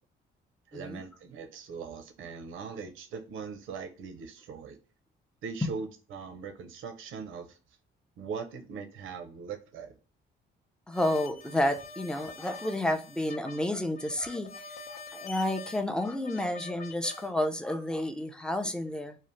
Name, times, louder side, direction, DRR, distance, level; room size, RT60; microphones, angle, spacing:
voice 1, 0.7-4.8 5.4-7.6 8.2-10.0, right 5 dB, 80° right, 0.6 m, -40 dB
sound 1, 10.9-17.3, left 4 dB, 50° left, 0.6 m, -45 dB
voice 2, 10.9-14.6 14.9-19.2, left 1 dB, 5° left, 0.4 m, -30 dB
2.7 x 2.1 x 3.1 m
cardioid pair, 90°, 20 cm